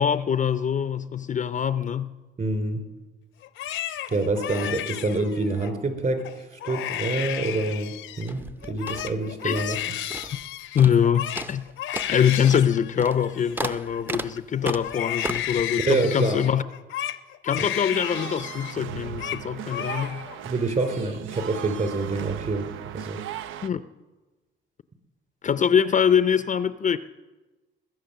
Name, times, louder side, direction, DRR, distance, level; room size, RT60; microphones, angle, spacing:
voice 1, 0.0-2.1 9.4-9.8 10.7-11.6 12.1-16.6 17.4-20.2 23.6-23.8 25.4-27.0, left 8 dB, 40° left, 0.5 m, -23 dB
voice 2, 2.4-2.8 4.1-9.8 15.8-16.4 20.4-22.7 22.9-23.2, right 2 dB, 45° right, 3.3 m, -27 dB
Crying sobbing, 3.4-5.7 6.2-6.3 6.6-8.3 8.6-14.4 14.8-18.8 19.0-19.4 19.7-20.4 20.7-21.4, left 12 dB, 80° left, 0.7 m, -33 dB
sound 1, 8.2-9.8 10.1-10.5 10.8-11.1 11.4-15.6, right 1 dB, 10° right, 0.6 m, -35 dB
sound 2, 17.9-23.7, right 11 dB, 85° right, 0.5 m, -37 dB
21.0 x 7.9 x 6.6 m
cardioid pair, 90°, 20 cm